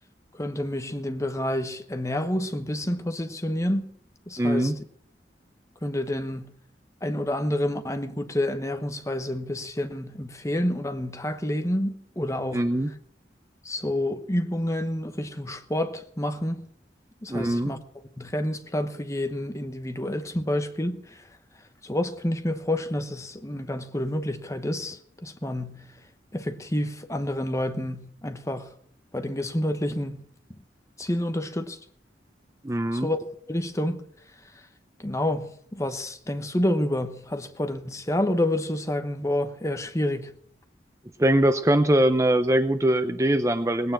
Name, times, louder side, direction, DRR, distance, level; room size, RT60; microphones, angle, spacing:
voice 1, 0.3-3.9 4.3-4.8 5.8-6.5 7.0-12.7 13.6-16.6 17.2-17.8 18.2-21.2 21.8-25.8 26.3-28.7 29.1-30.3 31.0-31.8 32.9-33.2 33.5-34.0 35.0-40.3, left 1 dB, 15° left, 1.0 m, -29 dB
voice 2, 4.4-4.8 12.5-12.9 17.3-17.7 32.6-33.1 41.2-43.9, right 1 dB, 15° right, 0.6 m, -22 dB
18.5 x 9.2 x 7.4 m
head